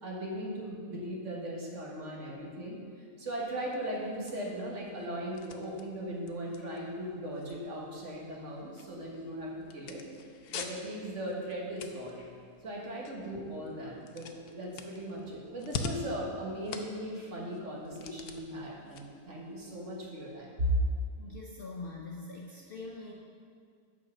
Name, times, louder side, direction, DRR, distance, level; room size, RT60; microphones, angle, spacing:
voice 1, 0.0-2.8 3.2-10.0 10.5-12.2 12.6-20.8, equal, 55° right, -3 dB, 1.8 m, -38 dB
sound 1, 3.4-20.4, left 5 dB, 90° left, 1.2 m, -46 dB
voice 2, 21.2-23.1, left 3 dB, 50° left, -2 dB, 0.8 m, -43 dB
9.1 x 4.9 x 6.3 m, 2.2 s
omnidirectional pair, 1.6 m